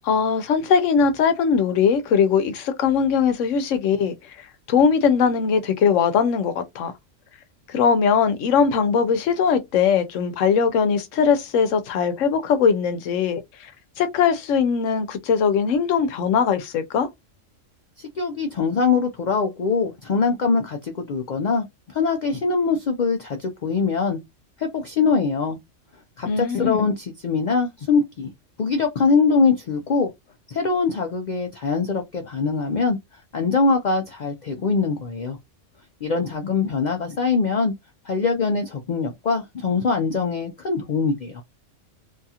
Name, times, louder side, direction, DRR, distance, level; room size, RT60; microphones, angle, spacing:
voice 1, 0.0-6.9 7.7-13.7 14.0-17.1 26.2-26.9, left 6 dB, 75° left, 0.9 m, -20 dB
voice 2, 18.0-24.2 24.6-25.6 26.2-28.3 28.6-30.1 30.5-33.0 33.3-35.4 36.0-37.7 38.1-41.4, left 4 dB, 90° left, 0.4 m, -23 dB
2.7 x 2.3 x 2.7 m
omnidirectional pair, 1.3 m